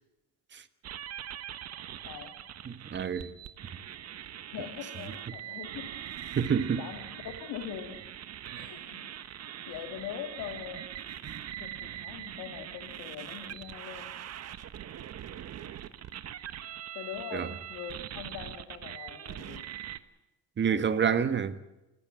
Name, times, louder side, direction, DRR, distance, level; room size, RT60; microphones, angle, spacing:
sound 1, 0.8-20.0, right 10 dB, 50° right, 1.2 m, -42 dB
voice 1, 2.0-2.4 4.5-5.9 6.5-8.0 8.5-10.9 11.6-14.1 16.9-19.6, left 9 dB, 85° left, 2.1 m, -42 dB
voice 2, 2.7-3.3 6.3-6.8 11.2-11.4 17.3-17.5 20.6-21.5, right 7 dB, 35° right, 1.4 m, -28 dB
28.0 x 15.5 x 7.6 m
cardioid pair, 120°, 33 cm